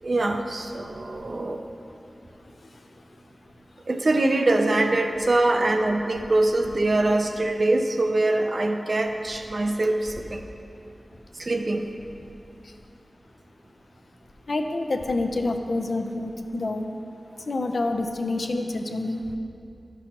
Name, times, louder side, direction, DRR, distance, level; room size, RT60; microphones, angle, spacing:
voice 1, 0.0-1.6 3.9-10.4 11.4-11.8, right 2 dB, 45° right, 5 dB, 0.5 m, -23 dB
voice 2, 2.5-3.0 12.6-12.7 14.5-16.9 17.4-19.2, left 2 dB, 60° left, 5 dB, 0.5 m, -28 dB
12.0 x 6.0 x 2.9 m, 2.6 s
wide cardioid pair, 100°, 0 cm